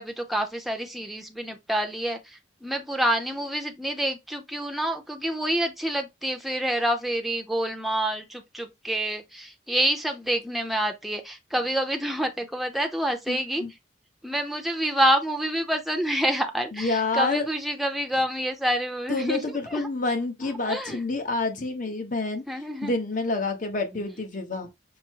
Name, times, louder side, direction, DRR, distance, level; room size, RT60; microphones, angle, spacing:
voice 1, 0.0-13.6 14.2-19.9 20.7-21.0 22.5-22.9, right 1 dB, ahead, 0.7 m, -27 dB
voice 2, 13.3-13.7 16.7-17.4 19.1-22.4 22.8-24.7, left 3 dB, 45° left, 1.1 m, -28 dB
5.3 x 2.1 x 4.6 m
head